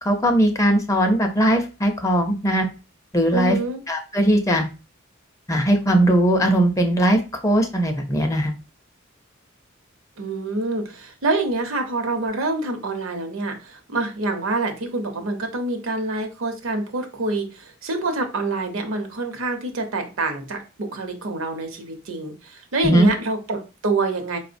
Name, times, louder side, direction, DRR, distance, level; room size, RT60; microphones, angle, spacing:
voice 1, 0.0-2.7 3.1-3.6 3.9-4.6 5.5-8.5 22.8-23.1, right 1 dB, 15° left, 5 dB, 0.4 m, -19 dB
voice 2, 3.3-3.8 10.2-24.4, right 2 dB, 80° right, 5 dB, 0.7 m, -26 dB
4.4 x 2.0 x 2.5 m, 0.31 s
head